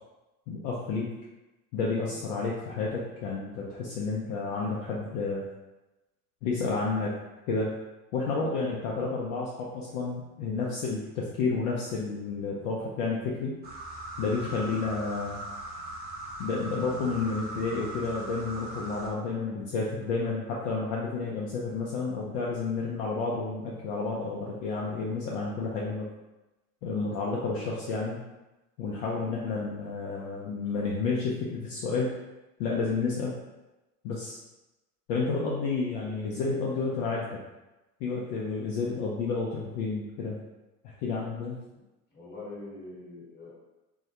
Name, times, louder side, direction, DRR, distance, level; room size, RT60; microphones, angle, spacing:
voice 1, 0.5-1.1 1.7-5.4 6.4-7.1 7.5-7.7 8.1-13.6 14.2-15.4 16.4-26.1 26.8-28.2 28.8-32.2 32.6-33.3 34.0-34.4 35.1-37.4 38.0-40.4 40.8-41.5, left 4 dB, 55° left, -4 dB, 0.6 m, -30 dB
sound 1, 13.6-19.1, right 1 dB, 20° right, 0.5 m, -39 dB
voice 2, 42.1-43.5, left 2 dB, 20° left, -6 dB, 1.1 m, -44 dB
2.2 x 2.1 x 2.8 m, 1.0 s
hypercardioid pair, 85°, 46 cm